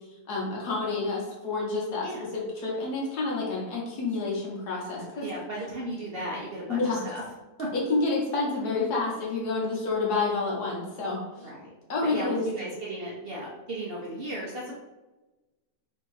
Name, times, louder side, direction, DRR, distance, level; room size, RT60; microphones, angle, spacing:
voice 1, 0.3-2.1 2.3-5.3 6.7-7.0 7.7-11.5 11.9-12.4, left 3 dB, 80° left, -3 dB, 1.6 m, -29 dB
voice 2, 5.0-7.2 7.6-7.7 11.4-11.7 12.0-14.8, right 1 dB, 55° right, -4 dB, 0.7 m, -36 dB
3.7 x 2.7 x 4.7 m, 1.1 s
omnidirectional pair, 1.7 m